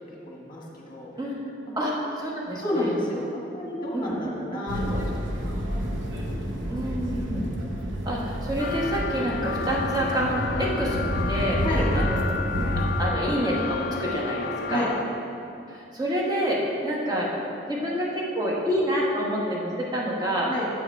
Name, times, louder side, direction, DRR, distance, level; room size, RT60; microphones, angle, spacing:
voice 1, 0.2-1.1 1.7-2.2 2.5-5.6 7.2-7.7 11.6-11.8 14.7-14.9 20.5-20.6, left 1 dB, 25° left, -3 dB, 1.2 m, -31 dB
voice 2, 1.8-2.9 3.9-4.2 6.7-7.4 8.0-11.0 11.3-11.6 11.9-12.2 13.0-14.9 15.7-17.3 17.7-20.5, equal, 20° right, -4 dB, 1.3 m, -27 dB
sound 1, 4.7-13.1, equal, 80° right, 0.9 m, -29 dB
sound 2, 8.6-15.0, left 5 dB, 55° left, 0.4 m, -32 dB
8.1 x 5.8 x 4.3 m, 2.7 s
head